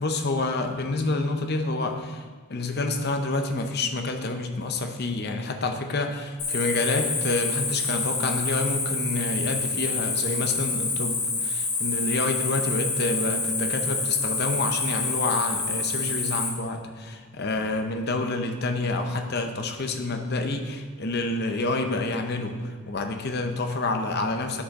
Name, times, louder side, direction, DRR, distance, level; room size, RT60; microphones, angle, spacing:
voice 1, 0.0-2.2 2.5-24.6, left 2 dB, 45° left, 6 dB, 0.7 m, -28 dB
Cricket, 6.4-16.5, left 3 dB, 80° left, 2.5 m, -28 dB
9.8 x 6.1 x 4.1 m, 1.5 s
head